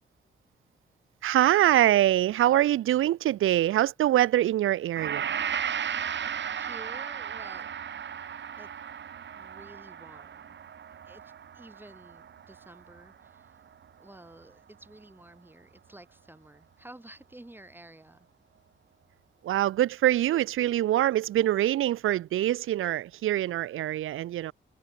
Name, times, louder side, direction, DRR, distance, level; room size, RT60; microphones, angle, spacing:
voice 1, 1.2-5.3 19.4-24.5, right 13 dB, 85° right, 0.5 m, -24 dB
Gong, 5.0-13.4 13.7-13.9, right 8 dB, 60° right, 2.1 m, -35 dB
voice 2, 6.6-7.7 8.6-8.7 9.4-10.6 11.0-13.6 14.0-18.3, right 1 dB, 10° right, 6.4 m, -51 dB
wide cardioid pair, 125°, 20 cm